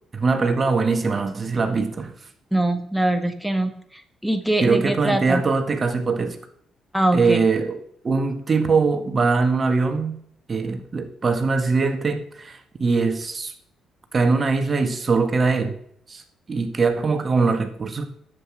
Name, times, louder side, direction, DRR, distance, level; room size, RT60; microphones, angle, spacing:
voice 1, 0.1-2.1 4.6-6.4 7.1-10.2 10.5-13.5 14.1-15.8 16.1-16.2 16.5-18.1, right 4 dB, 35° right, 1.7 m, -22 dB
voice 2, 2.5-5.4 6.9-7.4, right 1 dB, ahead, 1.6 m, -23 dB
11.5 x 8.2 x 6.5 m
figure-of-eight pair, 40°, 0 cm